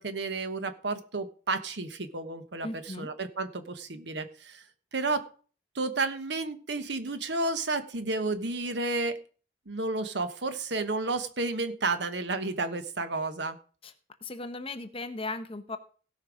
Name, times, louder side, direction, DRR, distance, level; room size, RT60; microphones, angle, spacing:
voice 1, 0.0-4.6 4.9-5.3 5.7-9.2 9.7-13.6, right 3 dB, 60° right, 10 dB, 1.1 m, -31 dB
voice 2, 2.6-3.1 13.8-13.9 14.2-15.8, left 2 dB, 30° left, 9 dB, 0.9 m, -37 dB
17.0 x 5.6 x 4.9 m, 0.41 s
head